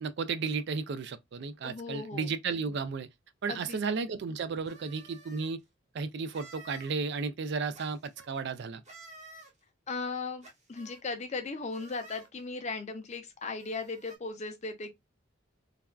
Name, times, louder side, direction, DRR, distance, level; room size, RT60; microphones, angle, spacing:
voice 1, 0.0-3.1 3.4-5.6 5.9-8.8, right 4 dB, 55° right, 0.3 m, -33 dB
voice 2, 1.6-2.3 3.5-3.8 9.9-14.9, left 3 dB, 35° left, 0.5 m, -37 dB
sound 1, 4.6-5.5 6.3-6.9 7.7-8.3 8.8-9.5 10.4-11.0 11.7-12.3 13.1-13.2 13.6-14.2, right 2 dB, 35° right, 0.9 m, -52 dB
3.3 x 2.3 x 2.2 m
head